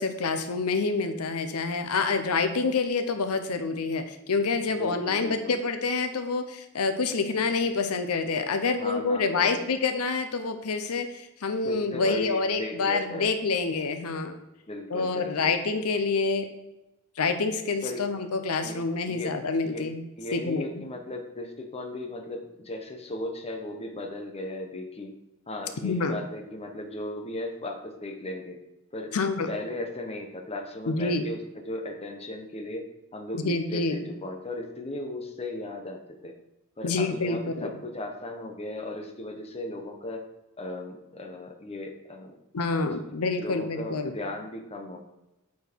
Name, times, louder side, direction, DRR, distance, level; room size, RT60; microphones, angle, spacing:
voice 1, 0.0-14.4 14.9-16.5 17.2-20.0 20.3-20.9 25.8-26.2 29.1-29.5 30.9-31.3 33.3-34.0 36.8-37.7 42.5-44.2, left 4 dB, 85° left, 8 dB, 0.7 m, -27 dB
voice 2, 4.7-5.6 8.8-9.7 11.6-13.3 14.7-15.5 17.8-18.0 18.6-18.8 19.1-19.3 19.6-19.8 20.2-25.1 25.5-28.6 28.9-29.2 29.5-36.3 36.8-40.3 40.6-42.4 42.9-43.0 43.4-45.0, left 1 dB, 30° left, 4 dB, 0.9 m, -36 dB
8.4 x 4.4 x 4.5 m, 0.95 s
head